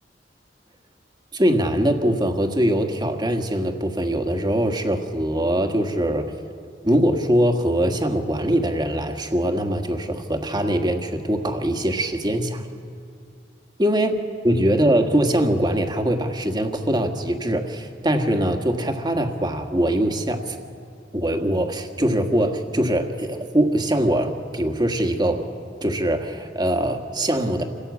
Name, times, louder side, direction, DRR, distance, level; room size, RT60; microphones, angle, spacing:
voice 1, 1.3-6.3 6.8-12.6 13.8-14.1 14.4-20.6 21.1-25.5 25.8-27.6, right 1 dB, 25° right, 5 dB, 1.6 m, -22 dB
27.0 x 17.0 x 8.4 m, 2.3 s
head